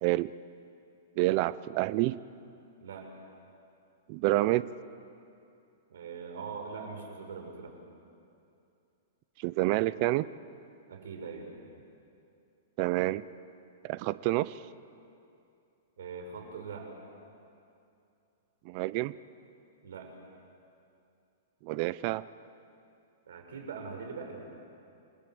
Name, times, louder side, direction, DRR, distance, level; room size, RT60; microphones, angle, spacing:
voice 1, 0.0-0.3 1.2-2.2 4.1-4.7 9.4-10.3 12.8-13.3 13.8-14.6 18.6-19.1 21.6-22.2, right 18 dB, 30° right, 17 dB, 0.5 m, -28 dB
voice 2, 2.8-3.1 5.9-7.8 10.9-11.5 16.0-16.9 19.8-20.1 23.3-24.4, right 5 dB, 75° right, 3 dB, 5.8 m, -42 dB
28.5 x 23.5 x 7.8 m, 2.6 s
hypercardioid pair, 175°, 0 cm